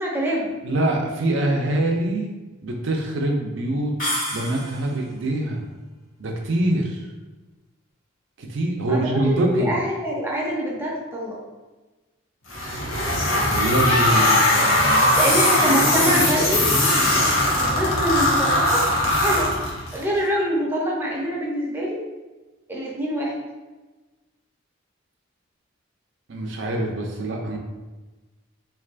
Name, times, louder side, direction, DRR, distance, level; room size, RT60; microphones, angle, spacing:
voice 1, 0.0-0.5 8.8-9.0 9.3-11.4 15.2-16.7 17.5-19.5 19.9-22.0 22.7-23.3, equal, 10° right, -3 dB, 0.6 m, -25 dB
voice 2, 0.6-2.3 2.6-3.9 4.3-5.6 6.2-7.1 8.4-9.7 13.5-14.9 15.3-15.4 26.3-27.6, right 1 dB, 65° right, 0 dB, 0.6 m, -24 dB
sound 1, 4.0-5.1, left 1 dB, 40° left, 1.3 m, -29 dB
sound 2, 12.5-20.0, left 1 dB, 90° left, 1.0 m, -20 dB
3.7 x 3.3 x 2.4 m, 1.2 s
head